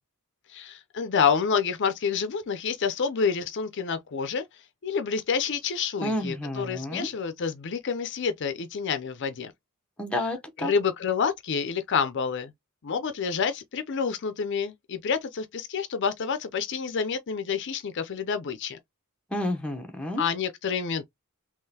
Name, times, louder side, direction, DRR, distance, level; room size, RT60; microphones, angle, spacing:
voice 1, 0.5-9.5 10.2-10.3 10.6-12.5 12.8-18.8 20.2-21.0, left 6 dB, 55° left, 0.5 m, -28 dB
voice 2, 6.0-7.1 10.0-10.7 19.3-20.2, left 1 dB, 5° left, 0.8 m, -30 dB
3.7 x 2.9 x 2.7 m
head